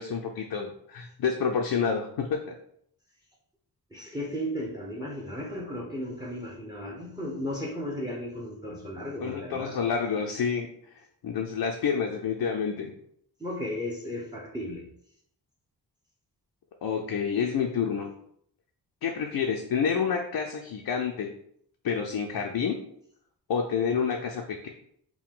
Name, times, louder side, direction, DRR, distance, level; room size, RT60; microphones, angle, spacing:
voice 1, 0.0-2.4 9.2-10.7 11.2-12.9 16.8-18.1 19.0-21.3 21.8-22.8 23.5-24.7, left 6 dB, 70° left, 1 dB, 0.6 m, -28 dB
voice 2, 3.9-9.8 13.4-14.8, equal, 10° right, -1 dB, 0.8 m, -35 dB
4.6 x 2.2 x 3.7 m, 0.68 s
wide cardioid pair, 95°, 40 cm